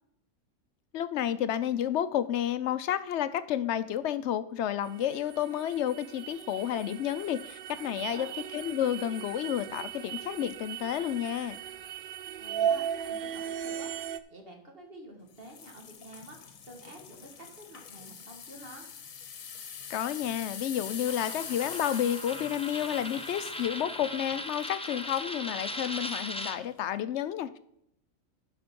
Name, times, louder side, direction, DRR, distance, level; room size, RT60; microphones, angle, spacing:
voice 1, 0.9-8.3 8.5-11.6 19.9-27.6, left 10 dB, 65° left, 14 dB, 0.8 m, -31 dB
sound 1, 4.9-14.2, right 9 dB, 65° right, 0.5 m, -37 dB
voice 2, 8.0-8.3 12.4-18.9, right 1 dB, 45° right, 2 dB, 2.0 m, -49 dB
sound 2, 15.4-25.3 25.8-26.0 26.5-26.6, left 7 dB, 90° left, 1.4 m, -44 dB
Coin (dropping), 21.1-26.6, left 1 dB, 10° left, 0.3 m, -38 dB
11.5 x 5.1 x 5.3 m, 0.76 s
omnidirectional pair, 1.4 m